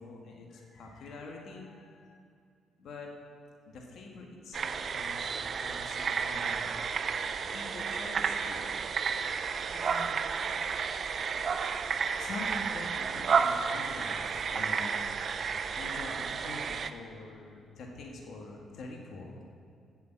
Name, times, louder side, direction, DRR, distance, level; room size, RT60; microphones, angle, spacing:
voice 1, 0.0-2.2 2.8-3.1 3.7-6.7 7.5-8.7 9.7-10.2 12.2-14.9 15.7-19.4, left 2 dB, 70° left, 0 dB, 1.6 m, -45 dB
sound 1, 4.5-16.9, right 6 dB, 50° right, 0.5 m, -32 dB
8.7 x 6.8 x 7.9 m, 2.3 s
cardioid pair, 90°, 0 cm